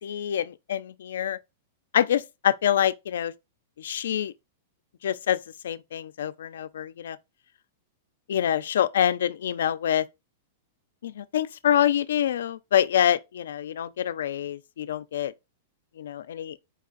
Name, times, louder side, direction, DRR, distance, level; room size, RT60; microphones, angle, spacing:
voice 1, 0.0-1.4 1.9-3.3 3.8-4.3 5.0-5.4 5.6-7.2 8.3-10.1 11.0-15.3 16.0-16.6, left 10 dB, 85° left, 0.5 m, -26 dB
4.7 x 2.6 x 3.8 m
supercardioid pair, 160°, 0 cm